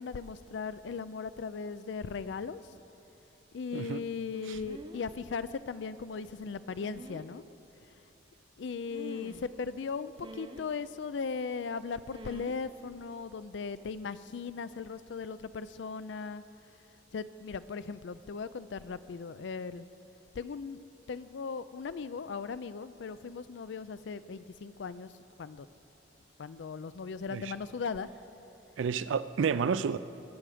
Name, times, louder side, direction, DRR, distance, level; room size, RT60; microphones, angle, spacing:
voice 1, 0.0-2.6 3.5-7.4 8.6-16.4 17.1-19.9 20.3-20.8 21.1-25.1 25.4-25.7 26.4-28.1, left 5 dB, 70° left, 14 dB, 0.4 m, -38 dB
voice 2, 3.7-4.0 4.5-4.6 27.3-27.5 28.8-30.0, right 6 dB, 85° right, 14 dB, 0.4 m, -30 dB
sound 1, 4.3-5.1 6.7-7.3 8.9-9.5 10.2-10.7 12.1-12.6 12.8-13.1, right 1 dB, 25° right, 0.7 m, -47 dB
20.5 x 7.5 x 5.0 m, 2.9 s
head